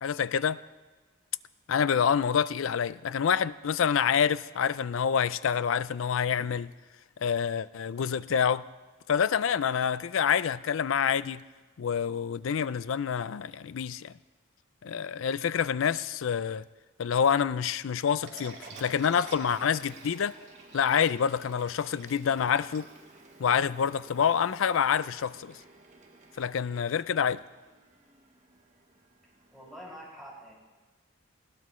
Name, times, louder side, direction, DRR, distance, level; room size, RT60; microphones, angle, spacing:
voice 1, 0.0-0.6 1.7-6.7 7.2-8.7 9.1-11.4 11.8-14.1 14.8-16.6 17.0-20.3 20.7-22.9 23.4-25.6 26.4-27.4, left 7 dB, 75° left, 0.4 m, -27 dB
sound 1, 18.2-23.5, right 3 dB, 55° right, 2.9 m, -49 dB
Printer, 18.5-29.8, right 2 dB, 35° right, 1.1 m, -55 dB
voice 2, 29.5-30.5, equal, ahead, 5.8 m, -45 dB
19.5 x 17.0 x 3.1 m
head